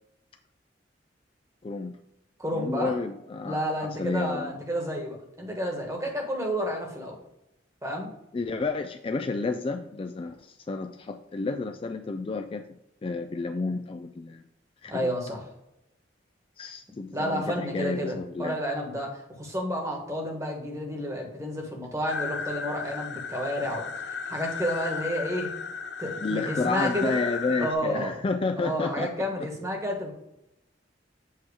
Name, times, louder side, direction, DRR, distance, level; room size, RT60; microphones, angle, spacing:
voice 1, 1.6-2.0 2.5-4.5 8.3-12.6 13.0-14.4 14.8-15.1 16.6-18.6 26.2-29.1 29.4-29.5, left 3 dB, 30° left, 6 dB, 0.3 m, -31 dB
voice 2, 2.4-3.0 3.4-7.2 7.8-8.1 14.9-15.4 17.1-25.5 26.0-27.2 27.6-28.1 28.6-30.1, equal, 15° right, 0 dB, 1.4 m, -31 dB
sound 1, 22.1-27.7, left 5 dB, 65° left, 0.6 m, -35 dB
7.5 x 3.0 x 4.8 m, 0.86 s
head